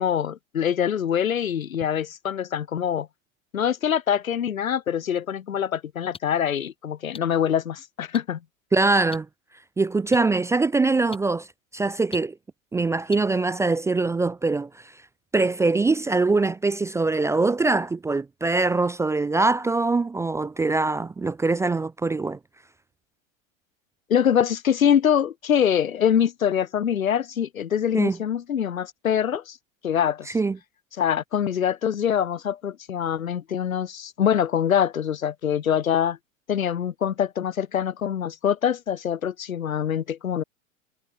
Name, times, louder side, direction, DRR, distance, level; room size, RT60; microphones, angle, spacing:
voice 1, 0.0-3.1 3.5-8.4 24.1-29.6 29.8-30.4 31.0-36.2 36.5-40.4, left 9 dB, 90° left, 1.3 m, -24 dB
sound 1, 5.1-5.2 6.1-6.2 7.1-7.2 8.1-8.2 9.1-9.2 10.1-10.2 11.1-11.2 12.1-12.2 13.1-13.2, left 5 dB, 15° left, 1.4 m, -38 dB
voice 2, 8.7-9.3 9.8-11.5 11.7-12.3 12.7-14.7 15.3-22.4 27.9-28.2 30.3-30.6, right 3 dB, 5° right, 0.4 m, -23 dB
hypercardioid pair, 105°, 40 cm